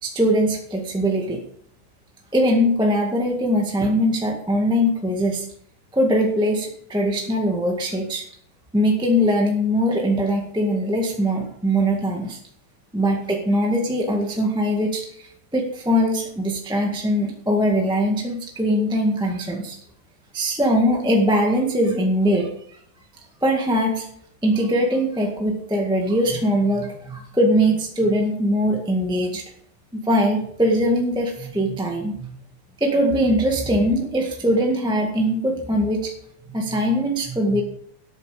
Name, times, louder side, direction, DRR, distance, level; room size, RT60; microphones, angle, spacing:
voice 1, 0.0-1.4 2.3-5.5 5.9-8.2 8.7-12.4 12.9-19.8 20.3-22.5 23.4-24.0 24.4-29.4 29.9-32.3 32.8-36.1 36.5-37.6, equal, ahead, 0 dB, 1.0 m, -21 dB
12.5 x 9.1 x 5.0 m, 0.66 s
omnidirectional pair, 3.6 m